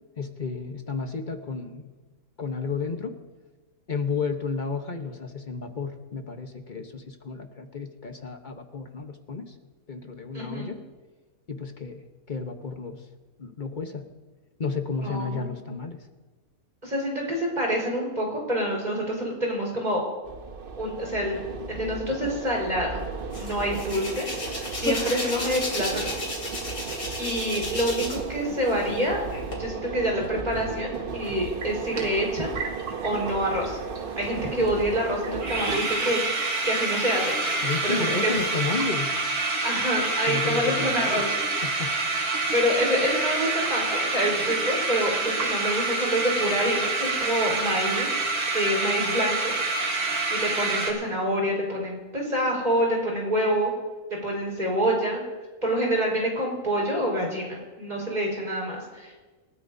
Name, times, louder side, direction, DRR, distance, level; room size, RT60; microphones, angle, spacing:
voice 1, 0.2-1.9 2.4-3.2 3.9-9.5 9.9-10.8 11.5-13.0 13.4-14.1 14.6-16.0 37.6-39.2 40.3-41.9, left 4 dB, 35° left, 5 dB, 1.0 m, -32 dB
voice 2, 10.3-10.7 15.0-15.5 16.8-20.0 20.8-21.4 21.7-23.0 23.4-24.3 24.7-26.2 27.2-29.2 29.5-32.5 33.0-33.8 34.2-37.3 37.8-38.0 38.2-38.3 39.6-41.3 42.5-49.5 50.3-53.7 54.1-55.2 55.6-59.1, equal, 30° right, -2 dB, 4.7 m, -27 dB
sound 1, 20.2-35.8, right 5 dB, 45° right, 0.9 m, -35 dB
Hands, 23.3-28.3 28.6-29.5, left 2 dB, 70° left, 3.5 m, -33 dB
sound 2, 31.2-31.3 31.6-33.4 33.6-33.7 33.9-34.2 34.5-34.6 35.0-35.1 35.2-50.9, right 3 dB, 75° right, 2.6 m, -27 dB
28.0 x 13.0 x 2.7 m, 1.3 s
omnidirectional pair, 1.6 m